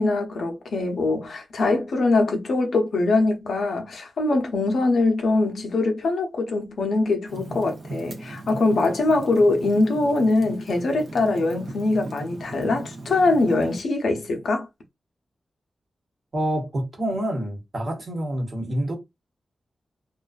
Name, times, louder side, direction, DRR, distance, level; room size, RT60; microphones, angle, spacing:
voice 1, 0.0-14.7, left 2 dB, 70° left, 0.6 m, -22 dB
Fire, 7.3-13.8, right 2 dB, 60° right, 0.7 m, -39 dB
voice 2, 16.3-19.0, right 1 dB, 40° right, 1.0 m, -27 dB
2.5 x 2.3 x 2.3 m
wide cardioid pair, 140°, 0 cm